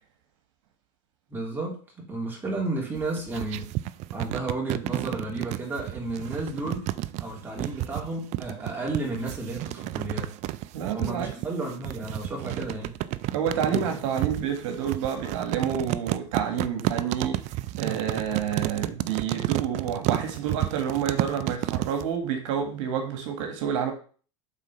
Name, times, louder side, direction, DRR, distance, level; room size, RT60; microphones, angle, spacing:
voice 1, 1.3-3.7 4.1-6.9 7.2-10.3 10.9-12.9 13.7-13.8, right 2 dB, 10° right, 3.1 m, -32 dB
sound 1, 3.0-22.1, right 15 dB, 45° right, 0.5 m, -31 dB
voice 2, 10.7-11.4 13.3-17.5 17.8-23.9, right 8 dB, 75° right, 1.7 m, -29 dB
7.5 x 4.1 x 5.7 m
supercardioid pair, 120°, 16 cm